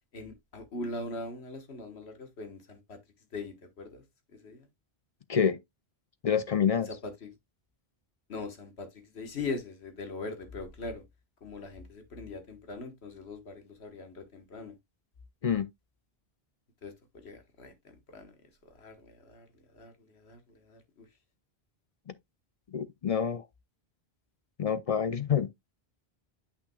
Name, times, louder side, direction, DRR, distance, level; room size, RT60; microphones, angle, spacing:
voice 1, 0.1-3.0 3.3-4.0 4.3-4.7 6.9-7.3 8.3-11.0 11.4-14.7 16.8-18.3 18.8-19.5 19.7-21.1, left 3 dB, 80° left, 1.7 m, -41 dB
voice 2, 6.2-6.9 15.4-15.7 22.1-22.2 22.7-23.4 24.6-25.5, left 7 dB, 50° left, 0.4 m, -27 dB
8.6 x 5.8 x 2.3 m
omnidirectional pair, 1.1 m